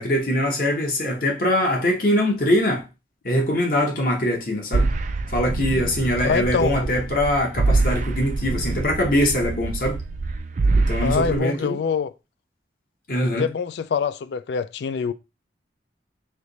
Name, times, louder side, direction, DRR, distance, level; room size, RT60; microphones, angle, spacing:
voice 1, 0.0-2.8 3.2-4.9 5.3-10.0 10.7-11.8 13.1-13.4, left 1 dB, 50° left, 1.0 m, -22 dB
sound 1, 4.7-11.4, right 3 dB, 40° right, 0.4 m, -25 dB
voice 2, 6.2-6.9 11.0-12.1 13.2-15.1, left 6 dB, 70° left, 0.3 m, -25 dB
3.3 x 3.0 x 3.9 m
head